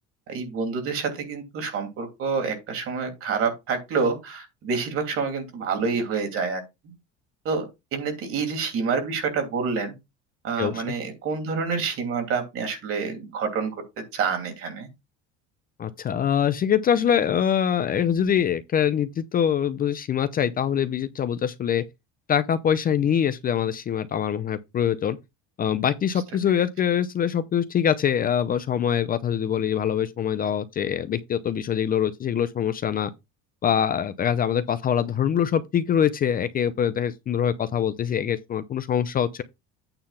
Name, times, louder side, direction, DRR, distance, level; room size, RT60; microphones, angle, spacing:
voice 1, 0.3-6.6 7.4-7.7 7.9-9.9 10.4-13.7 14.1-14.9, right 5 dB, 50° right, 3.0 m, -27 dB
voice 2, 10.6-10.9 15.8-21.8 22.3-25.2 25.6-33.1 33.6-39.4, left 9 dB, 30° left, 0.5 m, -24 dB
8.9 x 3.7 x 5.7 m
cardioid pair, 140°, 29 cm